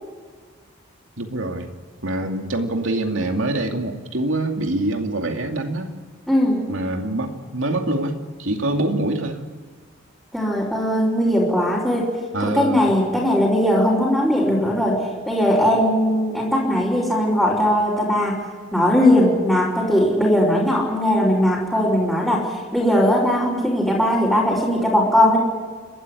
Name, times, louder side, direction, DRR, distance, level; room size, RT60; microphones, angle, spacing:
voice 1, 1.2-1.8 2.0-5.9 6.7-9.4 12.3-12.9, right 1 dB, 70° right, 4 dB, 2.5 m, -25 dB
voice 2, 6.3-6.6 10.3-12.1 12.4-15.0 15.3-18.4 18.7-22.5 22.7-25.4, equal, ahead, -10 dB, 4.7 m, -19 dB
29.5 x 13.5 x 9.7 m, 1.5 s
head